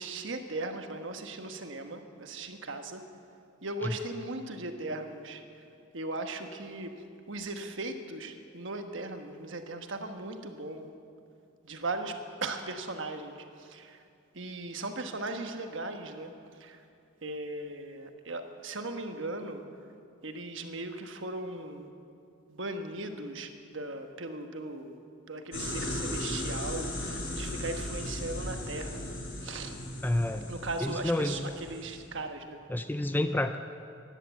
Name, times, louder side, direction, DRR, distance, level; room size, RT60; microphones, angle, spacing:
voice 1, 0.0-3.0 3.6-5.4 5.9-6.9 7.3-10.9 11.6-14.0 14.3-16.8 17.2-19.6 20.2-21.9 22.5-25.0 25.3-29.7 30.5-32.6, right 2 dB, 65° right, 6 dB, 1.2 m, -38 dB
sound 1, 25.5-32.0, left 1 dB, 70° left, 4.0 m, -37 dB
voice 2, 30.0-30.5 30.8-31.4 32.7-33.6, left 1 dB, 10° left, 8 dB, 0.4 m, -29 dB
15.5 x 10.5 x 7.9 m, 2.5 s
head